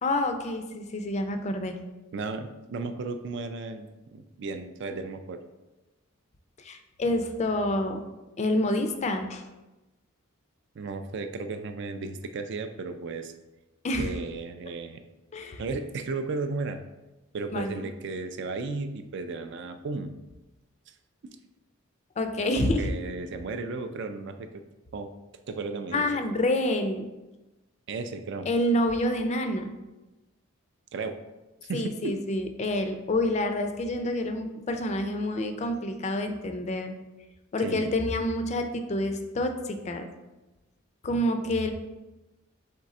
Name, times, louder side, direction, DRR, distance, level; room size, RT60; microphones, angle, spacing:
voice 1, 0.0-1.8 6.6-9.4 13.8-14.1 15.3-15.6 17.5-17.8 22.2-22.9 25.9-27.1 28.5-29.7 31.7-36.9 37.5-40.1 41.0-41.7, left 1 dB, 30° left, 7 dB, 0.4 m, -28 dB
voice 2, 2.1-5.4 10.8-13.3 14.0-15.0 15.6-16.8 17.3-20.2 22.6-24.6 24.9-25.1 25.5-26.1 27.9-28.5 30.9-31.2 31.6-32.1 37.6-37.9, right 3 dB, 55° right, 8 dB, 0.4 m, -34 dB
3.7 x 3.3 x 4.1 m, 1.1 s
head